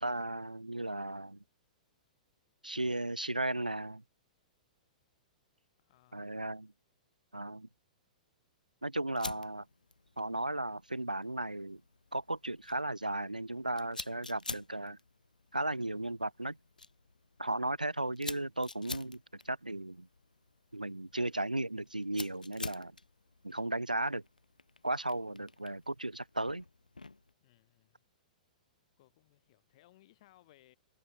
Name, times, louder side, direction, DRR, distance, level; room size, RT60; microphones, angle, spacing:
voice 1, 0.0-1.4 2.6-4.0 6.1-6.7 7.3-7.7 8.8-9.6 10.2-11.8 12.1-15.0 15.5-16.6 17.4-20.1 20.7-22.9 23.4-24.2 24.8-26.6, right 1 dB, 85° right, 0.7 m, -35 dB
voice 2, 5.8-6.4 27.4-28.1 29.0-30.8, left 16 dB, 45° left, 6.2 m, -65 dB
Fire, 9.2-27.3, left 3 dB, 80° left, 1.8 m, -49 dB
figure-of-eight pair, 105°, 4 cm